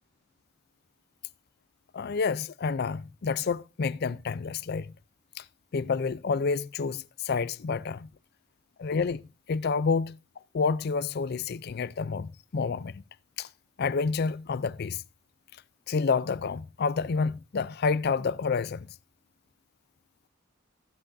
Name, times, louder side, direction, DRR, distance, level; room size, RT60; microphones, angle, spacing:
voice 1, 1.9-4.9 5.4-5.5 5.7-8.1 8.8-9.2 9.5-10.2 10.5-13.0 13.4-13.5 13.8-15.0 15.9-18.9, left 5 dB, 55° left, 0.4 m, -29 dB
17.0 x 8.9 x 2.6 m
head